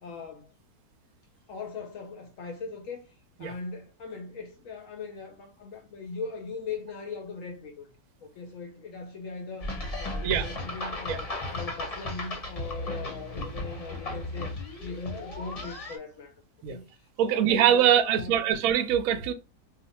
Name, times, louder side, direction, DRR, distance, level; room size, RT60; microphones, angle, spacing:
voice 1, 0.0-0.5 1.5-3.1 3.4-7.9 8.2-9.7 10.0-16.3 16.7-18.5, left 4 dB, 70° left, 0.8 m, -40 dB
sound 1, 9.6-16.0, left 1 dB, 35° left, 0.6 m, -35 dB
voice 2, 17.2-19.3, right 10 dB, 70° right, 0.9 m, -23 dB
2.5 x 2.4 x 4.0 m
omnidirectional pair, 1.7 m